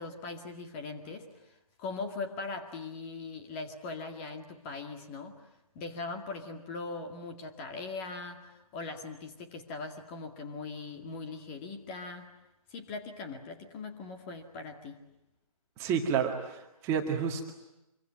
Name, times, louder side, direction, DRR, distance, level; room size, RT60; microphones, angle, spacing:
voice 1, 0.0-5.4 5.7-12.3 12.7-15.0, left 3 dB, 20° left, 4 dB, 2.1 m, -40 dB
voice 2, 15.8-17.5, right 7 dB, 15° right, 2 dB, 2.0 m, -30 dB
26.5 x 24.5 x 9.4 m, 0.93 s
figure-of-eight pair, 150°, 19 cm